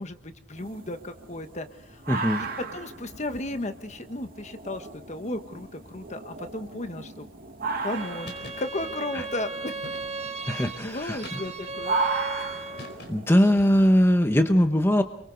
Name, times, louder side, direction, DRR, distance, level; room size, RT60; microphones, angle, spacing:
voice 1, 0.0-2.0 2.4-7.3 7.8-9.9 10.5-12.0, left 1 dB, 40° left, 8 dB, 1.3 m, -35 dB
sound 1, 0.6-14.0, right 4 dB, 55° right, 2.4 m, -36 dB
voice 2, 2.1-2.4 9.1-9.2 10.5-11.4 13.1-15.0, equal, 15° left, 7 dB, 1.1 m, -21 dB
Bowed string instrument, 7.9-13.0, right 3 dB, 35° right, 1.4 m, -36 dB
sound 2, 8.2-8.7 9.8-10.4 11.2-11.8 12.8-13.4, left 1 dB, 60° left, 4.6 m, -43 dB
29.5 x 23.5 x 4.0 m, 0.64 s
head